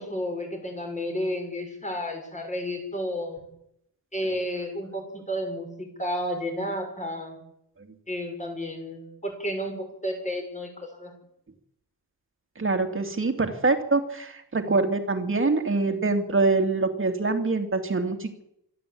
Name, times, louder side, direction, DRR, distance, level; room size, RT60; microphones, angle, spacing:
voice 1, 0.0-3.5 4.1-7.4 8.1-11.1, equal, 15° left, 3 dB, 6.3 m, -32 dB
voice 2, 12.6-18.4, right 3 dB, 30° right, 6 dB, 2.8 m, -25 dB
24.5 x 13.5 x 8.7 m, 0.78 s
wide cardioid pair, 155°, 40 cm